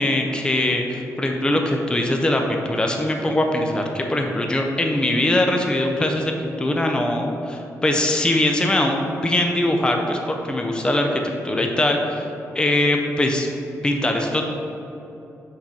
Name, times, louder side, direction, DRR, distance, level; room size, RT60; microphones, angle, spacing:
voice 1, 0.0-12.3 12.5-13.5 13.8-14.5, left 1 dB, 15° left, 2 dB, 0.5 m, -22 dB
5.8 x 3.8 x 4.2 m, 2.9 s
cardioid pair, 110°, 6 cm